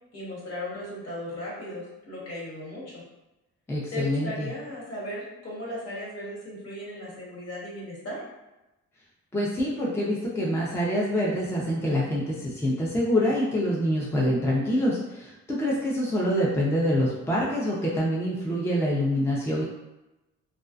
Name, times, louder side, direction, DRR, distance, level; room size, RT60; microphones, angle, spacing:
voice 1, 0.1-3.0 3.9-8.2, left 1 dB, 55° left, -6 dB, 1.3 m, -36 dB
voice 2, 3.7-4.5 9.3-19.6, equal, 10° left, -5 dB, 0.4 m, -26 dB
2.3 x 2.2 x 2.4 m, 0.99 s
cardioid pair, 90°, 30 cm